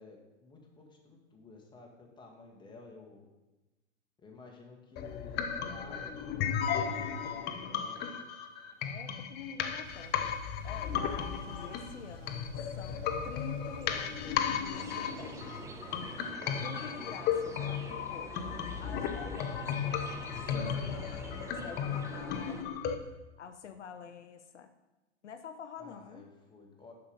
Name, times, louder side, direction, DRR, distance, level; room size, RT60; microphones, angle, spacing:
voice 1, 0.0-3.3 4.2-8.1 25.8-26.9, left 3 dB, 15° left, 0 dB, 1.5 m, -53 dB
sound 1, 5.0-23.0, left 8 dB, 30° left, 0.7 m, -35 dB
voice 2, 8.8-10.4 10.6-13.0 13.2-15.4 16.6-22.9 23.4-24.7 25.2-26.3, left 7 dB, 75° left, 8 dB, 0.7 m, -47 dB
Thunder / Bicycle, 9.8-16.3, right 3 dB, 85° right, 0.9 m, -51 dB
sound 2, 14.7-22.6, right 3 dB, 10° right, 0.5 m, -47 dB
7.0 x 5.8 x 5.2 m, 1.1 s
figure-of-eight pair, 100°, 35 cm